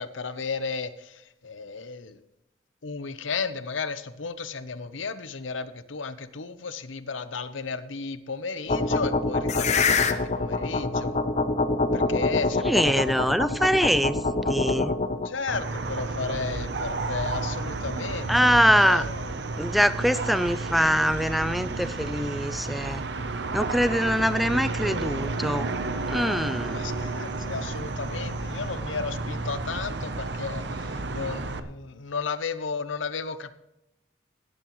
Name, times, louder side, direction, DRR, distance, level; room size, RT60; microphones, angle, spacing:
voice 1, 0.0-2.2 2.8-11.2 11.9-13.0 15.2-19.3 26.7-33.5, left 4 dB, 85° left, 12 dB, 0.8 m, -34 dB
sound 1, 8.7-15.3, left 3 dB, 35° left, 0.7 m, -25 dB
voice 2, 12.6-15.0 18.3-19.0 19.6-23.0 23.5-25.8 26.1-26.9, equal, ahead, 13 dB, 0.4 m, -23 dB
sound 2, 15.5-31.6, right 3 dB, 65° right, 0.8 m, -31 dB
16.5 x 11.0 x 3.1 m, 0.89 s
head